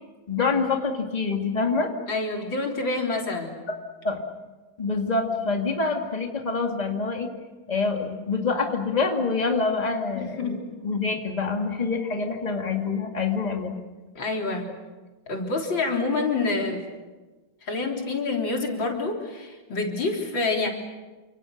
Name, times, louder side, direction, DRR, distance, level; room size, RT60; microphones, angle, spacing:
voice 1, 0.3-1.9 4.0-4.2 4.8-7.3 7.7-13.7, left 4 dB, 20° left, 3 dB, 2.4 m, -26 dB
voice 2, 2.1-3.6 10.2-10.6 14.2-14.6 15.3-16.8 17.6-20.7, left 3 dB, 85° left, 1 dB, 4.5 m, -27 dB
29.5 x 26.5 x 6.7 m, 1.2 s
omnidirectional pair, 2.0 m